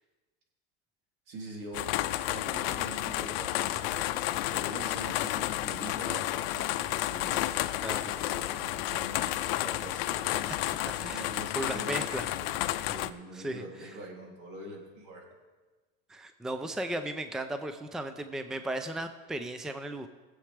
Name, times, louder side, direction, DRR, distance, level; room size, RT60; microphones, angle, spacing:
voice 1, 1.3-4.1 4.5-7.4 8.0-10.5 11.0-12.3 12.8-15.3, right 1 dB, 75° right, -1 dB, 3.0 m, -44 dB
sound 1, 1.7-13.1, left 15 dB, 75° left, 0.6 m, -31 dB
voice 2, 11.5-12.3 13.3-13.9 16.1-20.1, right 1 dB, ahead, 9 dB, 0.5 m, -36 dB
17.0 x 7.8 x 3.4 m, 1.3 s
supercardioid pair, 125°, 29 cm